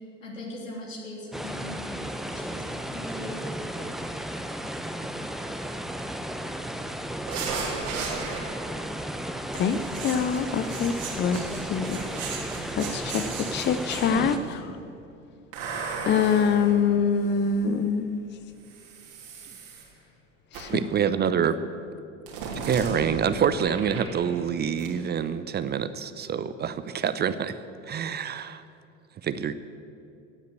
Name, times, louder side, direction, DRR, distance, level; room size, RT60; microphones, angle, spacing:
voice 1, 0.2-3.4, left 1 dB, 80° left, -2 dB, 3.4 m, -40 dB
sound 1, 1.3-14.4, right 1 dB, ahead, 1.0 m, -34 dB
sound 2, 7.3-8.8 9.5-14.5 15.5-17.7 18.6-19.8 20.5-20.9 22.3-24.5 24.8-24.9, right 4 dB, 60° right, 3.2 m, -36 dB
voice 2, 9.5-12.0 12.3-14.8 16.1-18.3 20.5-20.8, left 6 dB, 30° left, 11 dB, 0.7 m, -25 dB
voice 3, 20.7-21.6 22.7-27.5 27.9-28.6 29.2-29.5, right 7 dB, 25° right, 13 dB, 0.7 m, -26 dB
16.0 x 9.7 x 8.0 m, 2.6 s
figure-of-eight pair, 70°, 38 cm